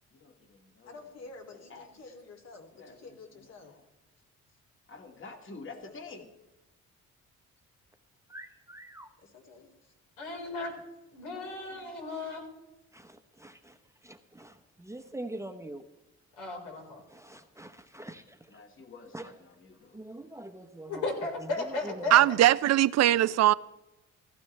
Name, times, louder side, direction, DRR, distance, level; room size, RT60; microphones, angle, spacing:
voice 1, 0.1-1.9 2.7-3.8 4.9-6.3 18.5-20.0 22.2-22.5, left 3 dB, 40° left, 2.0 m, -49 dB
voice 2, 0.8-3.7 5.8-5.9 9.2-9.9 16.7-16.8, left 3 dB, 60° left, 2.8 m, -50 dB
voice 3, 8.3-9.1 12.9-15.8 17.1-18.6 19.1-19.3 19.9-22.3, right 1 dB, 10° right, 0.9 m, -44 dB
voice 4, 10.2-10.7 11.1-12.4 16.4-17.0 20.9-22.2, left 3 dB, 85° left, 4.3 m, -35 dB
voice 5, 22.1-23.5, right 13 dB, 60° right, 0.4 m, -21 dB
16.0 x 14.0 x 3.3 m
cardioid pair, 90°, 30 cm